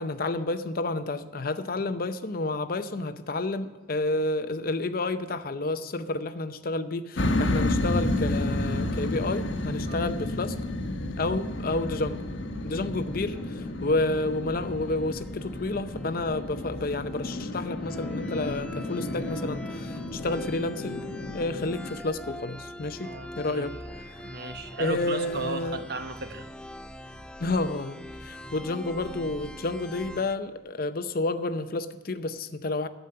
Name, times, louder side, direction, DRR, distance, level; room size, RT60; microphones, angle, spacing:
voice 1, 0.0-10.6 11.2-12.2 12.6-21.0 21.3-24.2 24.8-25.8 27.4-32.9, left 2 dB, 50° left, 11 dB, 0.7 m, -30 dB
sound 1, 7.2-22.0, left 1 dB, 80° left, 1.2 m, -31 dB
sound 2, 12.9-30.4, left 1 dB, 5° left, 0.3 m, -43 dB
voice 2, 23.0-23.6 24.2-26.5, right 3 dB, 55° right, 8 dB, 1.0 m, -35 dB
12.0 x 9.2 x 6.7 m, 1.4 s
head